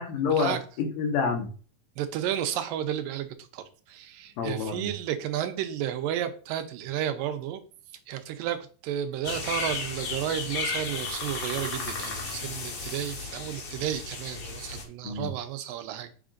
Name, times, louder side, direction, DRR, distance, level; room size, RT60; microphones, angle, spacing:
voice 1, 0.0-1.5 4.4-4.9 15.0-15.3, left 5 dB, 90° left, 2 dB, 3.1 m, -28 dB
voice 2, 2.0-7.6 8.1-16.1, right 10 dB, 85° right, 7 dB, 2.4 m, -32 dB
sound 1, 9.2-14.8, left 4 dB, 55° left, 1.8 m, -34 dB
7.0 x 5.7 x 2.5 m, 0.39 s
omnidirectional pair, 4.0 m